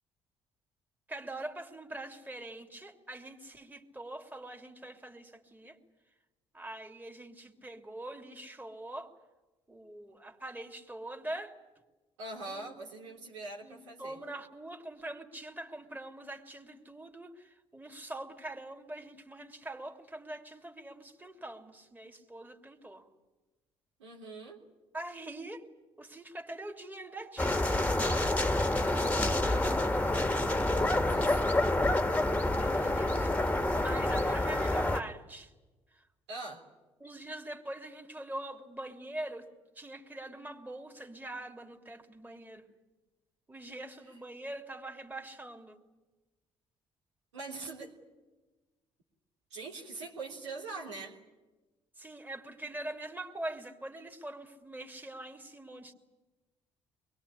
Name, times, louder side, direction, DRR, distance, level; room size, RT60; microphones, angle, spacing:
voice 1, 1.1-5.8 6.5-9.1 9.7-11.5 12.5-12.7 13.6-23.1 24.9-25.7 26.0-30.0 32.6-33.3 33.7-35.5 35.9-36.0 37.0-39.5 39.7-42.7 43.5-45.8 52.0-55.9, right 1 dB, 10° right, 4 dB, 3.0 m, -43 dB
voice 2, 12.2-14.2 24.0-24.6 30.7-31.7 36.3-36.6 44.0-44.2 47.3-47.9 49.5-51.2, right 3 dB, 85° right, -2 dB, 3.4 m, -43 dB
sound 1, 27.4-35.0, left 1 dB, 10° left, 1.9 m, -28 dB
24.5 x 21.5 x 10.0 m, 1.2 s
hypercardioid pair, 50°, 14 cm